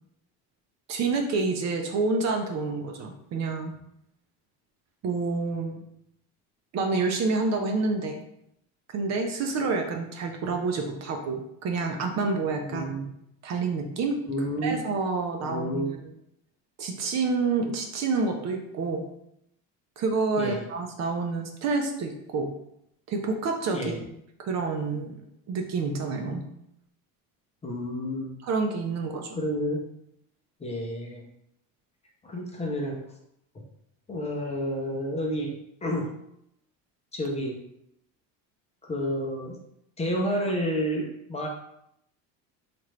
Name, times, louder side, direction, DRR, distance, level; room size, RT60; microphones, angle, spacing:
voice 1, 0.9-3.7 5.0-5.8 6.7-8.2 8.9-13.0 13.4-14.2 14.6-16.1 16.8-19.0 20.0-22.5 23.1-24.0 24.4-25.1 25.5-26.4 28.4-29.4, right 4 dB, 50° right, 4 dB, 0.6 m, -28 dB
voice 2, 12.7-13.1 14.3-14.8 15.4-16.0 20.4-20.6 23.7-24.0 27.6-28.3 29.3-29.9 30.6-31.2 32.2-33.0 33.5-33.6 34.1-35.6 35.8-36.1 37.1-37.6 38.8-39.6 40.0-41.5, equal, 20° left, 0 dB, 0.6 m, -30 dB
4.2 x 2.5 x 3.2 m, 0.76 s
cardioid pair, 140°, 35 cm